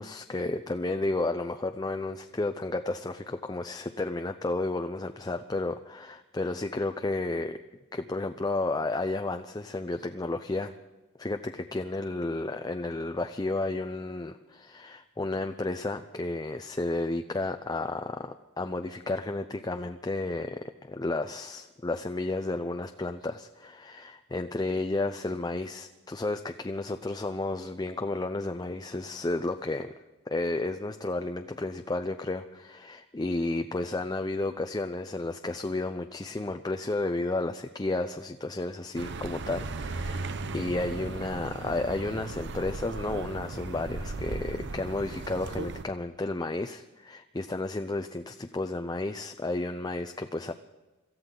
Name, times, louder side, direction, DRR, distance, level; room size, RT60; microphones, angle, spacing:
voice 1, 0.0-7.6 7.9-10.7 11.2-29.9 30.3-50.5, left 2 dB, 20° left, 7 dB, 0.5 m, -32 dB
Accelerating revving vroom, 39.0-45.9, right 3 dB, 55° right, 0.7 m, -36 dB
25.5 x 14.0 x 3.9 m, 1.1 s
head